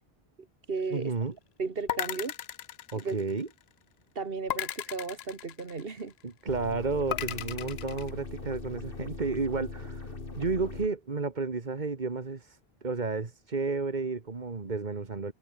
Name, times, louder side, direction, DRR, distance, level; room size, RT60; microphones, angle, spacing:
voice 1, 0.4-1.1 1.6-2.3 2.9-3.2 4.2-6.1, right 4 dB, 60° right, 1.9 m, -35 dB
voice 2, 0.9-1.3 2.9-3.5 6.2-10.1 10.3-15.3, right 4 dB, 45° right, 1.8 m, -32 dB
sound 1, 1.9-3.6 4.5-6.1 7.1-8.1, left 11 dB, 80° left, 0.9 m, -35 dB
sound 2, 6.5-10.9, left 3 dB, 60° left, 2.5 m, -40 dB
omnidirectional pair, 1.1 m